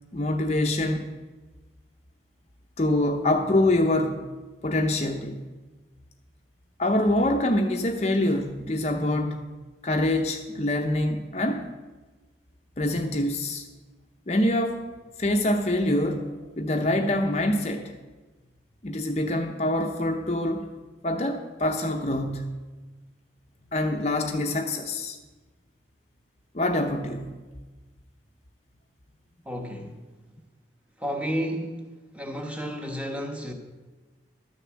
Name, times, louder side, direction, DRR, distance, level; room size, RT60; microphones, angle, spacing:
voice 1, 0.1-1.1 2.8-4.2 4.6-5.4 6.8-9.4 9.8-11.7 12.8-13.7 14.3-14.8 15.2-17.9 18.8-20.7 21.0-22.5 23.7-25.2 26.5-27.3, left 1 dB, 35° left, 3 dB, 0.7 m, -25 dB
voice 2, 29.4-30.0 31.0-31.9 32.1-33.5, equal, 5° right, 3 dB, 1.2 m, -31 dB
12.5 x 6.8 x 7.5 m, 1.2 s
head